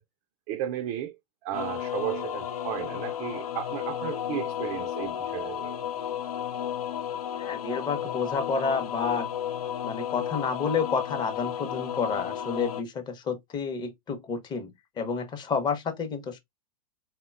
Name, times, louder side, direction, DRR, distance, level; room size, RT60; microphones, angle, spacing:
voice 1, 0.5-1.2 1.4-5.8, right 11 dB, 40° right, 0.4 m, -34 dB
sound 1, 1.5-12.8, left 10 dB, 75° left, 0.4 m, -33 dB
voice 2, 7.4-9.3 9.8-16.4, left 5 dB, 25° left, 0.7 m, -30 dB
3.7 x 2.1 x 2.3 m
hypercardioid pair, 110°, 19 cm